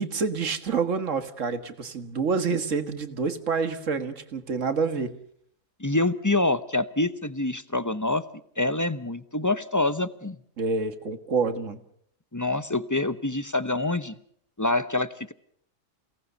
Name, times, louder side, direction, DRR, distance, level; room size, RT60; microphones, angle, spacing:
voice 1, 0.0-5.1 10.6-11.8, right 5 dB, 70° right, 10 dB, 2.0 m, -27 dB
voice 2, 5.8-8.2 8.6-10.4 12.3-14.1 14.6-15.3, left 2 dB, 15° left, 13 dB, 0.8 m, -26 dB
28.5 x 18.0 x 6.9 m, 0.65 s
omnidirectional pair, 1.4 m